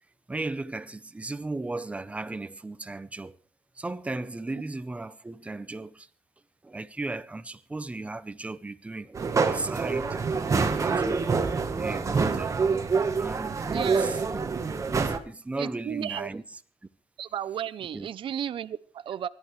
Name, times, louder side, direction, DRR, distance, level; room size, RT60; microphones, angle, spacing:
voice 1, 0.3-3.4 3.8-6.1 6.6-9.2 9.4-10.2 10.5-11.3 11.8-12.6 13.2-14.2 14.9-16.4 17.9-18.1, right 2 dB, 15° right, 0.7 m, -36 dB
sound 1, 9.1-15.2, right 4 dB, 30° right, 1.3 m, -26 dB
voice 2, 13.7-14.0 15.6-16.3 17.2-19.3, right 9 dB, 55° right, 0.6 m, -33 dB
24.5 x 11.5 x 3.2 m
wide cardioid pair, 165°, 10 cm